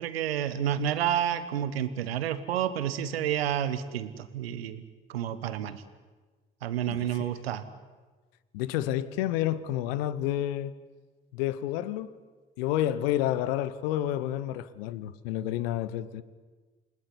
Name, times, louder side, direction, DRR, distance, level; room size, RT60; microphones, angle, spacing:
voice 1, 0.0-4.8 5.1-5.8 6.6-7.7, right 10 dB, 85° right, 1.3 m, -30 dB
voice 2, 6.9-7.3 8.5-10.7 11.3-12.1 12.6-16.2, left 12 dB, 75° left, 1.1 m, -30 dB
29.0 x 19.0 x 9.7 m
figure-of-eight pair, 45°, 30 cm